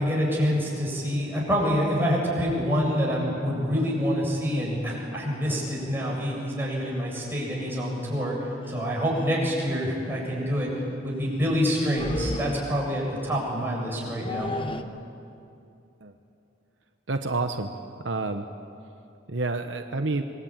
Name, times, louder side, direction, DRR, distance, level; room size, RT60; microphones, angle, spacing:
voice 1, 0.0-10.7 11.0-14.5, equal, 10° right, -4 dB, 7.4 m, -26 dB
sound 1, 6.8-7.0 8.2-8.3 8.7-8.8 9.1-9.3 11.7-13.0 13.9-14.8, left 1 dB, 30° left, 1.0 m, -34 dB
voice 2, 17.1-17.7 18.0-18.5 19.3-20.2, right 3 dB, 70° right, 6 dB, 1.1 m, -28 dB
25.5 x 21.0 x 9.0 m, 2.6 s
head